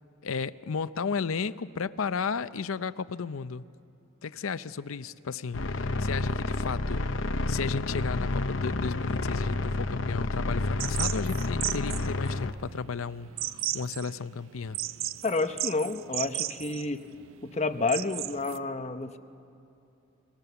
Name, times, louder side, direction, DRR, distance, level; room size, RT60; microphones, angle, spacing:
voice 1, 0.2-3.6 4.2-7.1 7.5-14.8, left 5 dB, 80° left, 14 dB, 0.6 m, -34 dB
sound 1, 5.5-12.5, left 2 dB, 65° left, 0.9 m, -30 dB
sound 2, 10.8-18.6, right 13 dB, 70° right, 0.5 m, -35 dB
voice 2, 15.2-17.0 17.4-19.2, left 3 dB, 30° left, 8 dB, 0.9 m, -30 dB
29.0 x 21.5 x 6.9 m, 2.7 s
head